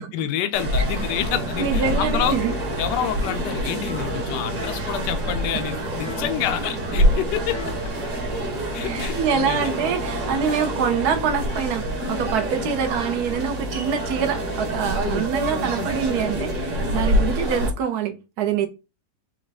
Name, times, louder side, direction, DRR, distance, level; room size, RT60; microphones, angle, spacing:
voice 1, 0.0-2.4 2.8-7.6 8.7-9.6, left 10 dB, 75° left, 1.1 m, -28 dB
sound 1, 0.5-17.7, equal, 50° right, 1.7 m, -26 dB
voice 2, 1.6-2.5 5.5-5.6 8.8-18.7, right 7 dB, 65° right, 1.2 m, -25 dB
sound 2, 3.1-3.6 4.5-5.0 6.0-6.5 7.4-8.0, left 10 dB, 45° left, 0.8 m, -40 dB
4.6 x 2.2 x 4.0 m
omnidirectional pair, 2.0 m